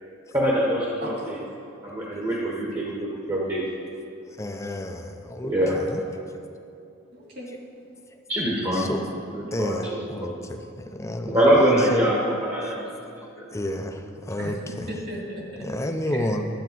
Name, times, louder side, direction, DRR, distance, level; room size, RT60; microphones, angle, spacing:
voice 1, 0.3-1.4 1.8-2.8 3.3-3.6 5.4-5.8 8.3-8.9 9.3-10.4 11.3-12.8 13.4-13.5, equal, 20° right, -4 dB, 1.2 m, -23 dB
voice 2, 4.3-6.0 8.7-9.0 9.5-12.1 13.5-14.9 15.6-16.5, left 1 dB, 15° left, 5 dB, 0.6 m, -30 dB
voice 3, 7.1-7.5 8.7-8.8 14.4-14.5 14.9-15.6 15.9-16.3, right 1 dB, 50° right, -3 dB, 2.4 m, -37 dB
12.0 x 8.1 x 4.6 m, 2.6 s
head